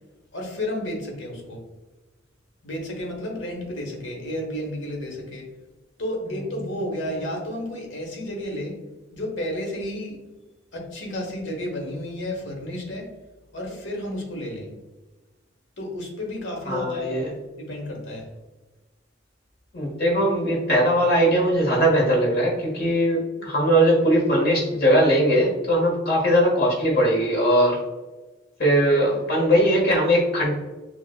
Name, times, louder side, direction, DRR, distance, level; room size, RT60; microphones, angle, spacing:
voice 1, 0.3-1.6 2.6-5.5 6.0-8.8 9.1-10.2 10.7-13.1 13.5-14.7 15.8-17.3 17.6-18.3, left 1 dB, 85° left, 0 dB, 1.2 m, -32 dB
voice 2, 16.7-17.3 19.7-27.8 28.6-30.5, equal, 55° left, -2 dB, 1.4 m, -20 dB
6.3 x 2.4 x 2.3 m, 1.1 s
head